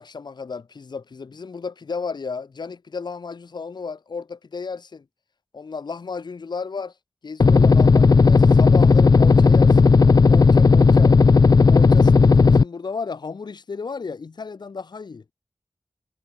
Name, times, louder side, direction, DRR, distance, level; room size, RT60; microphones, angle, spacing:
voice 1, 0.0-5.0 5.5-6.9 7.2-11.2 11.7-15.2, left 5 dB, 80° left, 6.2 m, -33 dB
sound 1, 7.4-12.6, left 4 dB, 60° left, 1.1 m, -14 dB
wide cardioid pair, 80°, 7 cm